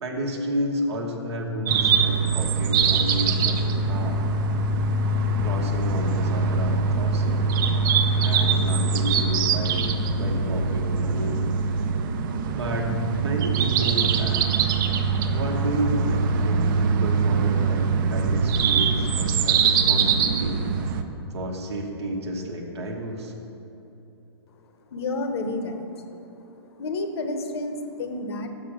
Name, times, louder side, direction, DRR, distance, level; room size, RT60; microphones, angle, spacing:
voice 1, 0.0-3.6 3.9-4.2 5.4-7.5 8.2-9.9 10.1-11.4 12.5-14.5 15.3-20.6 21.3-23.3, equal, 75° right, 0 dB, 1.1 m, -31 dB
sound 1, 1.7-21.0, right 4 dB, 50° right, 0.5 m, -23 dB
voice 2, 24.6-26.0 26.4-28.5, left 2 dB, 65° left, 6 dB, 0.9 m, -31 dB
6.9 x 5.0 x 6.0 m, 2.9 s
hypercardioid pair, 125°, 14 cm